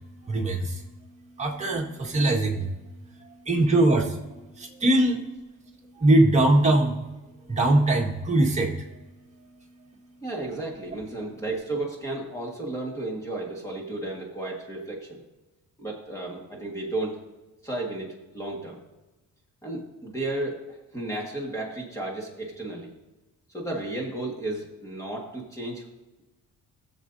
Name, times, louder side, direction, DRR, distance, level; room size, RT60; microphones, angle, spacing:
voice 1, 0.2-0.8 1.4-2.7 3.4-4.2 4.6-5.2 6.0-7.1 7.5-8.7, right 1 dB, 20° right, -1 dB, 1.6 m, -21 dB
voice 2, 10.2-15.2 15.8-17.2 17.6-18.8 19.6-22.9 23.5-25.9, right 2 dB, 10° left, -2 dB, 1.6 m, -33 dB
19.5 x 7.4 x 2.7 m, 1.1 s
cardioid pair, 170°, 32 cm